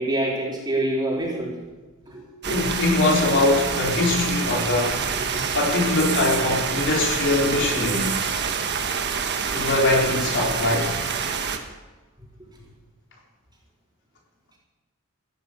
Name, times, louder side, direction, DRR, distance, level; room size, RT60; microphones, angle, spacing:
voice 1, 0.0-1.6 2.0-2.7 5.3-5.4, right 1 dB, 20° right, -4 dB, 4.2 m, -26 dB
sound 1, 2.4-11.6, right 6 dB, 50° right, 1.4 m, -27 dB
voice 2, 2.5-5.1 5.5-8.1 9.5-10.9, left 2 dB, 60° left, -1 dB, 3.9 m, -22 dB
15.5 x 11.0 x 7.0 m, 1.2 s
head